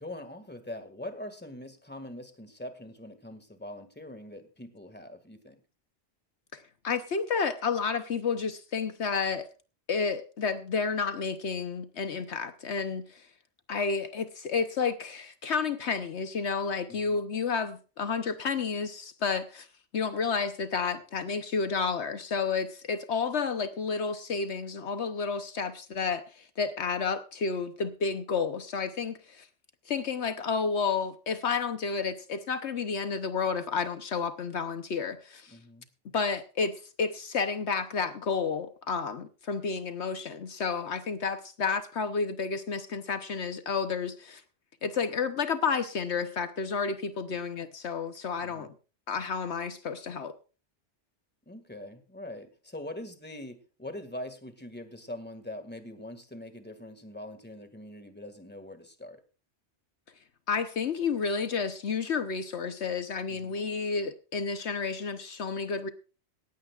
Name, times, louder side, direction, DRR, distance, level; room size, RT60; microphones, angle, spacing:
voice 1, 0.0-5.6 16.9-17.2 35.5-35.9 47.3-47.4 48.4-48.7 51.5-59.2 63.3-63.5, left 1 dB, 10° left, 1.9 m, -43 dB
voice 2, 6.5-9.5 9.9-13.3 13.7-19.7 19.9-29.5 29.9-35.6 36.1-44.4 44.8-48.7 49.1-50.4 60.5-65.9, left 5 dB, 70° left, 1.2 m, -31 dB
18.0 x 15.5 x 2.4 m
omnidirectional pair, 1.2 m